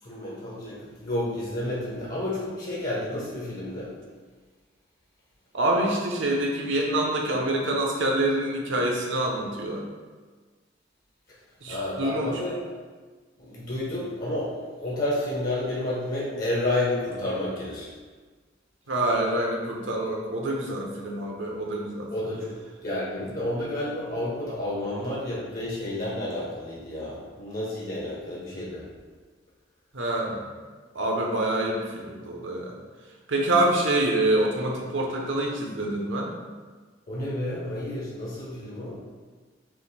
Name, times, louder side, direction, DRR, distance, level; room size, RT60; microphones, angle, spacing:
voice 1, 0.0-3.9 11.6-12.6 13.4-17.9 22.1-28.9 37.1-39.0, left 1 dB, 50° left, -6 dB, 1.0 m, -30 dB
voice 2, 5.5-9.8 11.6-12.3 18.9-22.1 23.2-23.3 29.9-30.4 30.9-32.7 33.3-36.3, right 1 dB, 70° right, 0 dB, 0.8 m, -26 dB
5.4 x 2.6 x 3.3 m, 1.4 s
head